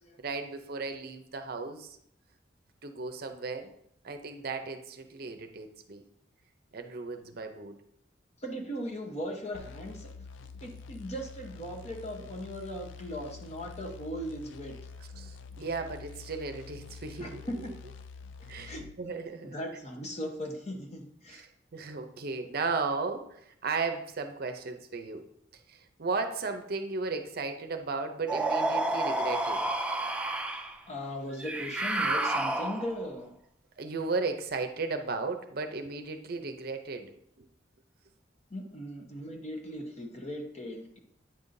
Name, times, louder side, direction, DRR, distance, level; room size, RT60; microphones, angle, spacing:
voice 1, 0.2-2.0 2.8-3.7 4.0-6.0 6.7-7.8 15.2-17.4 18.5-19.6 21.3-25.3 25.7-29.7 33.8-37.1 37.4-37.5, right 4 dB, 55° right, 6 dB, 0.6 m, -35 dB
voice 2, 8.4-10.1 10.6-14.8 17.2-17.7 18.7-18.8 19.4-21.4 30.9-33.3 38.5-41.0, equal, 35° left, 3 dB, 0.9 m, -38 dB
sound 1, 9.5-19.0, left 5 dB, 85° left, 0.4 m, -47 dB
sound 2, 28.3-30.7 31.4-33.1, right 2 dB, 5° right, 0.4 m, -30 dB
8.8 x 5.5 x 2.6 m, 0.73 s
head